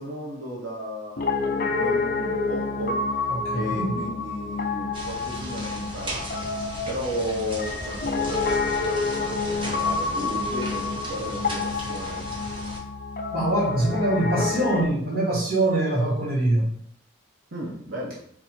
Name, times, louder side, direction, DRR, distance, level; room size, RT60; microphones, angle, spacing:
voice 1, 0.0-3.0 3.5-12.3 17.5-18.2, equal, 85° right, -3 dB, 1.0 m, -34 dB
Piano, 1.2-14.9, left 4 dB, 50° left, 0.5 m, -28 dB
voice 2, 3.3-4.0 13.3-16.7, right 1 dB, 50° right, -3 dB, 1.6 m, -23 dB
sound 1, 4.9-12.8, right 1 dB, 25° right, 0.9 m, -37 dB
4.2 x 2.7 x 4.4 m, 0.62 s
head